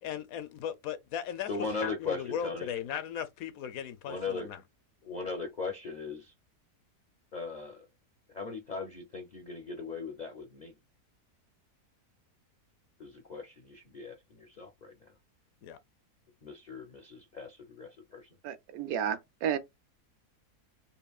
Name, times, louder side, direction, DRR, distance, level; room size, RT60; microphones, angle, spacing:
voice 1, 0.0-4.6 15.6-15.8, left 9 dB, 70° left, 1.0 m, -37 dB
voice 2, 1.5-2.7 4.0-4.5 5.0-6.3 7.3-7.9 8.3-10.7 13.0-15.1 16.4-18.3, left 4 dB, 50° left, 0.5 m, -39 dB
voice 3, 18.4-19.6, right 9 dB, 70° right, 1.0 m, -32 dB
5.2 x 2.5 x 2.3 m
omnidirectional pair, 1.7 m